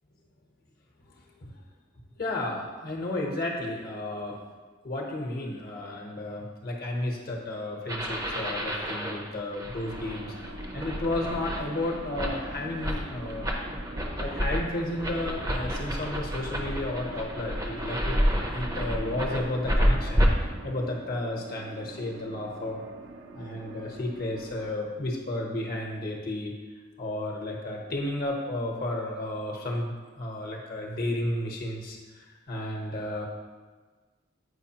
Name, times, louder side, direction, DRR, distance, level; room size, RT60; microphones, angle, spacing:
voice 1, 2.2-4.4 4.8-13.5 14.2-20.2 20.6-22.8 23.3-26.5 27.0-33.3, left 1 dB, 50° left, -1 dB, 0.9 m, -33 dB
sound 1, 7.9-20.3, equal, 20° right, 0.6 m, -30 dB
sound 2, 9.8-24.7, right 1 dB, 65° right, 0.5 m, -44 dB
7.9 x 5.1 x 2.8 m, 1.4 s
head